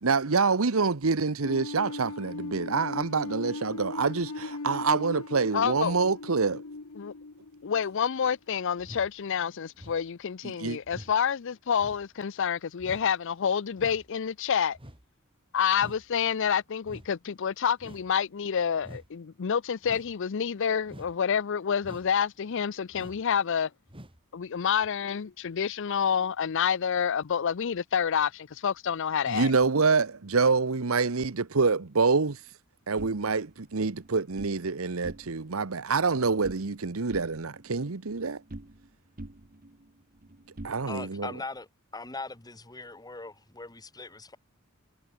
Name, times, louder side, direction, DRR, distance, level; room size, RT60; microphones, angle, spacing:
voice 1, 0.0-6.6 10.6-10.8 29.3-32.5 32.9-38.4 40.6-41.3, right 4 dB, 80° right, 1.0 m, -26 dB
sound 1, 1.4-8.3, left 3 dB, 85° left, 1.2 m, -39 dB
voice 2, 5.5-5.9 7.0-7.1 7.6-14.8 15.5-23.7 24.3-29.5, left 7 dB, 60° left, 0.5 m, -28 dB
sound 2, 8.8-9.1 9.8-10.1 10.8-11.1 11.8-12.1 12.8-13.1 13.8-14.1 14.7-15.1 15.8-16.1 16.8-17.1 17.8-18.1 18.8-19.1 19.8-20.1 20.9-21.2 21.8-22.2 22.9-23.3 23.9-24.2 24.8-24.9, equal, 25° right, 4.7 m, -47 dB
sound 3, 33.0-34.6 34.9-35.6 35.9-36.8 37.1-38.9 39.2-41.3, right 1 dB, 40° right, 1.3 m, -46 dB
voice 3, 40.9-41.7 41.9-44.4, left 3 dB, 20° left, 2.0 m, -40 dB
head